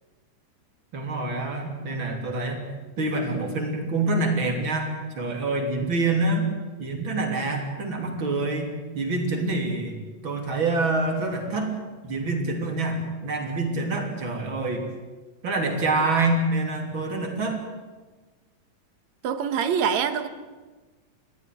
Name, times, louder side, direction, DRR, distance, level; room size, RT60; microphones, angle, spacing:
voice 1, 0.9-2.6 3.0-4.9 5.2-6.4 6.8-10.0 10.2-11.7 12.0-14.8 15.4-17.6, right 2 dB, 40° right, 3 dB, 3.8 m, -26 dB
voice 2, 19.2-20.3, right 7 dB, 70° right, 10 dB, 2.4 m, -24 dB
21.5 x 16.0 x 9.4 m, 1.3 s
omnidirectional pair, 3.6 m